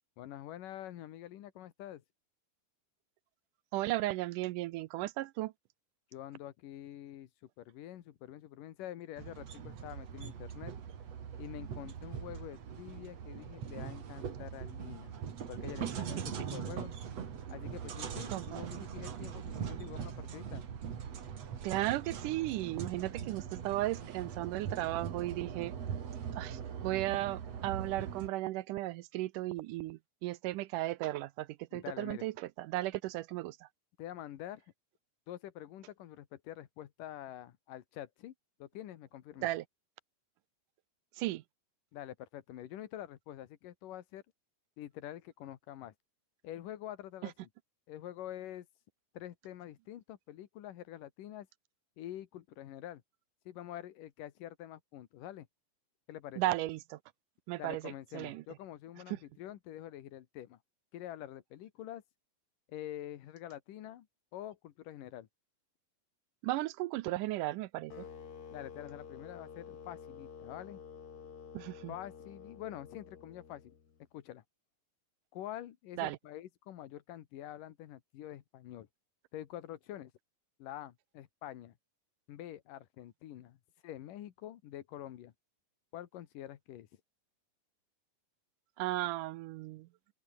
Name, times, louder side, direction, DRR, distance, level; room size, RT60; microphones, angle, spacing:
voice 1, 0.2-2.0 6.1-7.3 7.6-10.7 11.4-15.1 15.5-16.9 17.5-20.6 31.7-32.3 34.0-34.6 35.3-38.3 38.6-39.5 41.9-44.2 44.8-45.9 46.4-47.5 47.9-48.7 49.1-51.5 52.0-53.0 53.5-55.5 56.1-56.4 57.6-60.6 60.9-62.0 62.7-64.1 64.3-65.3 68.5-70.8 71.9-73.7 74.1-74.4 75.3-78.9 79.3-80.1 80.6-81.7 82.3-83.6 83.8-85.3 85.9-86.9, left 12 dB, 70° left, 2.9 m, -46 dB
voice 2, 3.7-5.5 15.8-15.9 18.3-18.8 21.6-25.7 26.3-33.7 39.4-39.6 41.2-41.4 47.2-47.3 56.4-57.0 57.5-58.4 59.1-59.2 66.4-68.0 71.5-71.9 76.0-76.2 88.8-89.9, right 17 dB, 80° right, 2.0 m, -35 dB
sound 1, 9.2-28.3, right 7 dB, 50° right, 3.1 m, -41 dB
sound 2, 67.9-74.0, left 6 dB, 55° left, 4.3 m, -50 dB
open air
omnidirectional pair, 4.1 m